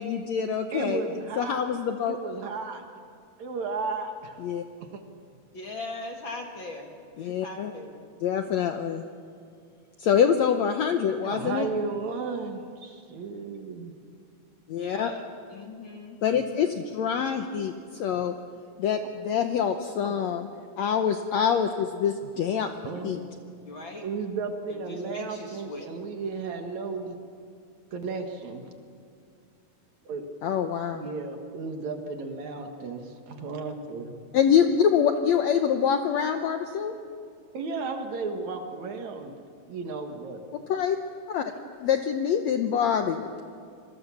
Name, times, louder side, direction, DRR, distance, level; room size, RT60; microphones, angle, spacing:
voice 1, 0.0-1.0 1.4-2.2 4.4-4.6 7.2-7.7 8.2-9.0 10.0-11.7 14.7-15.1 16.2-18.3 18.8-20.5 20.8-22.7 23.0-23.2 30.4-31.1 34.3-36.9 40.5-41.0 41.3-41.5 41.8-43.4, left 8 dB, 70° left, 6 dB, 1.7 m, -25 dB
voice 2, 0.7-1.6 2.1-2.8 3.4-4.4 4.9-5.0 11.2-13.9 20.0-20.1 22.9-23.3 24.0-27.2 27.9-28.6 30.0-30.3 30.9-34.1 37.5-39.3 39.7-40.4, right 4 dB, 60° right, 4 dB, 2.7 m, -34 dB
voice 3, 5.5-8.1 14.7-15.2 15.5-16.6 23.6-24.1 24.7-25.9, left 2 dB, 45° left, 2 dB, 2.0 m, -40 dB
26.5 x 22.5 x 7.1 m, 2.3 s
omnidirectional pair, 4.0 m